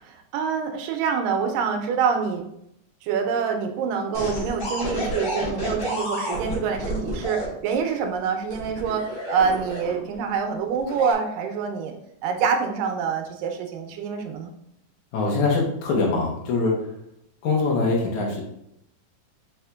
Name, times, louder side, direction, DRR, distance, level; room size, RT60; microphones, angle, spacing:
voice 1, 0.0-2.4 3.0-11.9 12.2-14.5, right 6 dB, 85° right, 5 dB, 2.2 m, -26 dB
sound 1, 4.1-7.5 8.5-10.1 10.8-11.1, equal, 50° left, 1.4 m, -30 dB
voice 2, 15.1-17.0 17.4-18.4, left 3 dB, 70° left, -2 dB, 1.9 m, -23 dB
4.8 x 4.3 x 2.2 m, 0.77 s
omnidirectional pair, 4.0 m